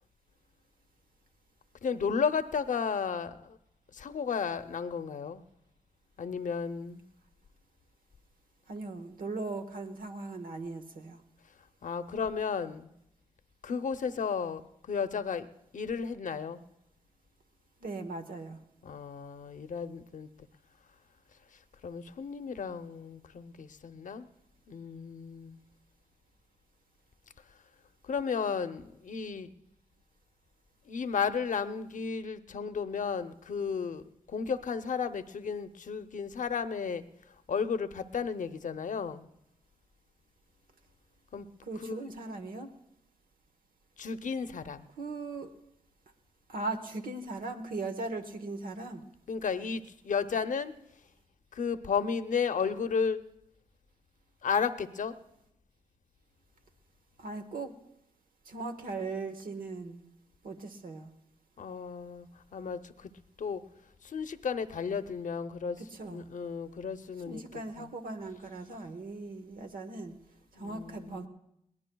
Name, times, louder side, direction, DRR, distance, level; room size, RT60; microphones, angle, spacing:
voice 1, 1.8-3.6 3.9-5.4 6.2-7.0 11.8-12.9 13.6-16.6 18.8-20.3 21.8-24.3 24.7-25.6 28.0-29.5 30.9-37.0 37.5-39.3 41.3-41.5 41.8-42.0 44.0-44.9 49.3-50.7 51.5-53.2 54.4-55.2 61.6-63.1 63.4-63.6 64.0-65.8 66.1-67.4 67.8-67.9 70.6-71.3, left 6 dB, 65° left, 10 dB, 0.7 m, -33 dB
voice 2, 8.7-11.2 17.8-18.6 41.6-42.7 45.0-45.5 46.5-49.0 57.2-57.7 58.4-60.1 60.4-61.1 65.8-66.3 67.3-70.2 70.5-71.3, right 3 dB, 80° right, 6 dB, 1.2 m, -39 dB
21.5 x 18.0 x 2.3 m, 0.80 s
cardioid pair, 75°, 14 cm